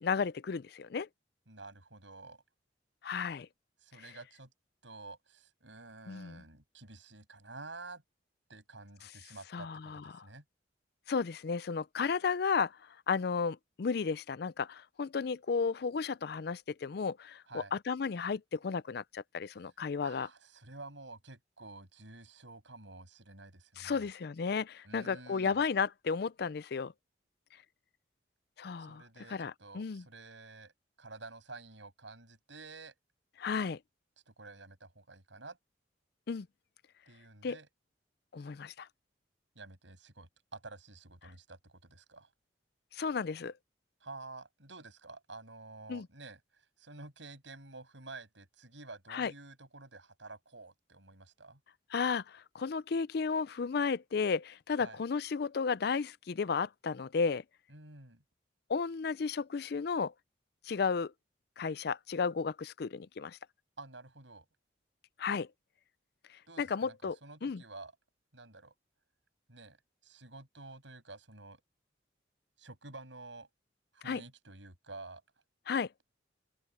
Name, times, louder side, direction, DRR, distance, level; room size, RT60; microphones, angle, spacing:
voice 1, 0.0-1.1 3.0-3.5 4.0-4.1 6.1-6.4 9.0-9.1 9.5-10.3 11.1-20.3 23.8-26.9 28.6-29.0 29.3-30.0 33.4-33.8 36.3-36.5 37.4-37.6 38.3-38.9 42.9-43.5 45.9-46.1 49.1-49.3 51.9-57.4 58.7-60.1 60.6-61.1 61.6-63.4 65.2-65.5 66.3-67.2 67.4-67.6 74.0-74.2 75.7-75.9, left 5 dB, 60° left, 0.4 m, -33 dB
voice 2, 1.5-2.4 3.8-4.5 4.8-8.0 8.5-10.4 17.5-17.8 20.0-24.1 24.8-25.6 28.9-30.7 31.0-32.9 34.3-35.6 37.1-37.7 39.5-42.3 44.0-51.6 54.8-55.0 57.7-58.2 63.8-64.5 66.5-67.0 67.2-67.9 68.3-68.7 69.5-69.8 70.0-71.6 72.6-73.5 73.9-75.2, right 3 dB, 90° right, 7.8 m, -50 dB
open air
head